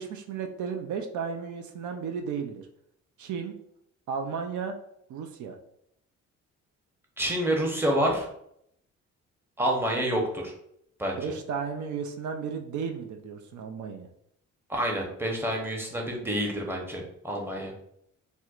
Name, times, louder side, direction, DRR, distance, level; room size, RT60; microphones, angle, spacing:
voice 1, 0.0-2.7 3.2-3.5 4.1-4.8 5.1-5.6 11.2-14.1, right 6 dB, 75° right, 5 dB, 0.5 m, -34 dB
voice 2, 7.2-8.3 9.6-10.5 11.0-11.3 14.7-17.7, right 1 dB, 10° right, -1 dB, 0.8 m, -28 dB
4.3 x 2.2 x 2.4 m, 0.74 s
cardioid pair, 90°, 30 cm